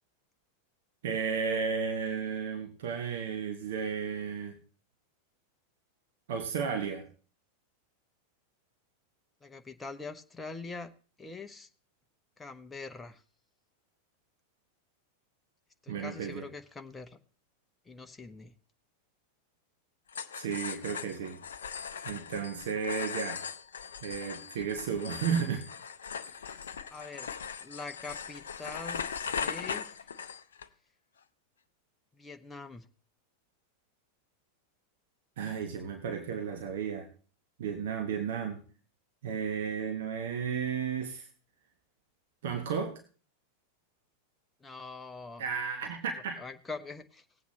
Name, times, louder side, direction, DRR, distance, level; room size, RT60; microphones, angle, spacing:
voice 1, 1.0-4.6 6.3-7.1 15.9-16.5 20.3-21.4 22.0-23.4 24.0-25.6 26.4-26.6 35.4-37.1 37.6-38.6 39.2-41.3 42.4-43.0 45.4-46.4, right 6 dB, 55° right, 6 dB, 1.1 m, -33 dB
voice 2, 9.4-10.9 11.2-11.7 12.4-13.2 15.8-17.2 17.9-18.5 24.6-24.7 26.9-27.3 27.6-30.0 32.2-32.8 44.6-45.4 46.4-47.2, left 4 dB, 10° left, 7 dB, 0.8 m, -43 dB
sound 1, 20.1-30.7, left 7 dB, 65° left, 0.5 m, -39 dB
18.5 x 8.2 x 3.1 m, 0.38 s
figure-of-eight pair, 90°, 0 cm